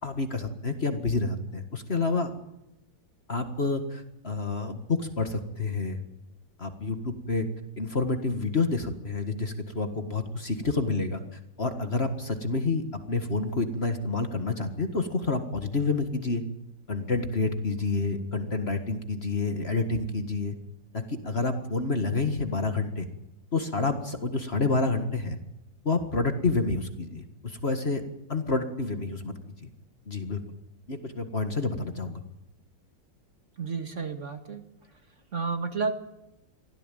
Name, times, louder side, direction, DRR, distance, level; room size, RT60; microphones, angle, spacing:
voice 1, 0.0-2.4 3.3-6.0 6.6-7.5 7.8-16.4 16.9-20.6 20.9-23.1 23.5-25.4 25.8-28.0 28.3-29.7 30.1-30.4 30.9-32.2, left 3 dB, 35° left, 7 dB, 1.9 m, -29 dB
voice 2, 33.6-34.6 35.3-35.9, right 5 dB, 40° right, 7 dB, 2.1 m, -31 dB
24.0 x 16.5 x 9.2 m, 0.88 s
omnidirectional pair, 2.0 m